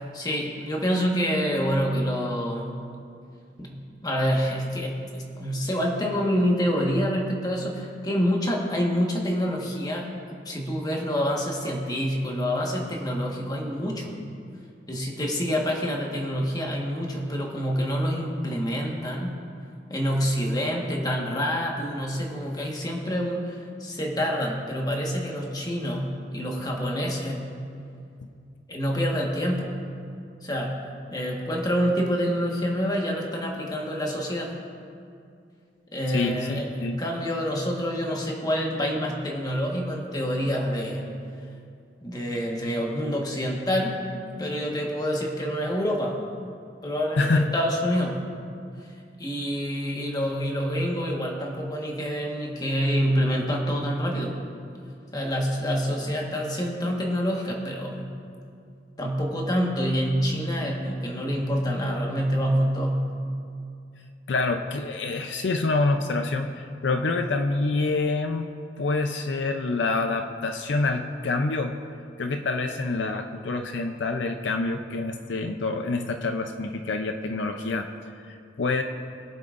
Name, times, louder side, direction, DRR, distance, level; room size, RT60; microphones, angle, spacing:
voice 1, 0.1-2.7 3.6-14.1 14.9-19.3 19.9-27.4 28.7-29.7 30.4-34.5 35.9-41.1 42.0-44.0 44.4-46.2 46.8-48.2 49.2-54.4 55.1-58.1 59.0-63.1, equal, 20° left, -1 dB, 1.4 m, -27 dB
voice 2, 36.1-37.0 47.2-47.5 64.3-71.8 72.2-77.9 78.3-78.8, left 3 dB, 70° left, 5 dB, 0.5 m, -26 dB
22.0 x 7.8 x 2.5 m, 2.4 s
head